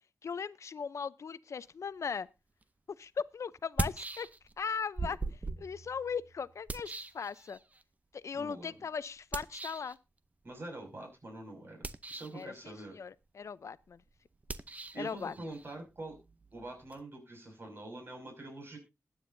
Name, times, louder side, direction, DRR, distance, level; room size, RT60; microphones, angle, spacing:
voice 1, 0.2-2.3 3.0-4.3 4.6-7.6 8.1-10.0 12.3-14.0 15.0-15.3, left 6 dB, 65° left, 0.6 m, -38 dB
sound 1, 2.6-2.7 3.6-4.6 5.0-7.8 9.3-9.9 11.7-12.5 14.4-17.0, right 3 dB, 30° right, 0.7 m, -40 dB
voice 2, 8.3-8.7 10.4-11.8 12.1-13.0 14.9-16.2 16.5-18.8, right 2 dB, 45° right, 6.1 m, -45 dB
20.5 x 9.2 x 2.6 m
wide cardioid pair, 100°, 5 cm